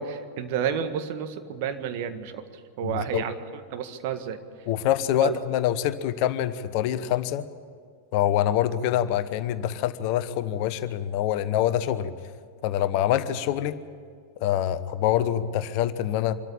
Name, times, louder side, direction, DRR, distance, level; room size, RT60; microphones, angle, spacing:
voice 1, 0.0-2.4 2.8-3.4 3.7-4.4 5.2-5.3, right 8 dB, 50° right, 8 dB, 1.7 m, -30 dB
voice 2, 2.8-3.2 4.7-7.4 8.1-12.1 12.6-13.7 14.4-16.3, left 11 dB, 45° left, 13 dB, 1.0 m, -25 dB
25.5 x 13.5 x 8.6 m, 2.1 s
figure-of-eight pair, 90°, 0 cm